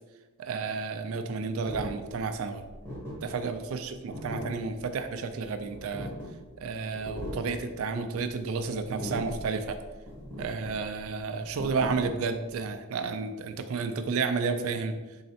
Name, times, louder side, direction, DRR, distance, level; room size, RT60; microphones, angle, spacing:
voice 1, 0.4-2.6 3.2-6.1 6.6-9.8 10.4-15.0, right 4 dB, 65° right, 8 dB, 0.3 m, -31 dB
sound 1, 1.7-12.6, equal, 10° left, 1.0 m, -40 dB
3.9 x 3.2 x 2.7 m, 1.2 s
head